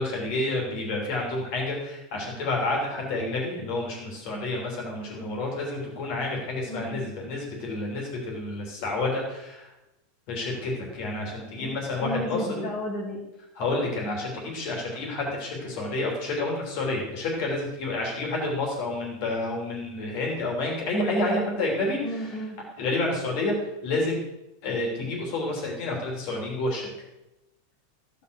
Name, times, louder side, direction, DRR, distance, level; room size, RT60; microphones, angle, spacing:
voice 1, 0.0-9.6 10.3-12.4 13.6-22.0 22.8-23.5 23.8-24.2 24.6-26.8, left 2 dB, 60° left, -1 dB, 4.7 m, -29 dB
voice 2, 6.7-7.1 11.5-13.2 22.0-22.6, equal, 75° left, -4 dB, 4.2 m, -34 dB
15.0 x 8.3 x 8.3 m, 0.95 s
omnidirectional pair, 3.4 m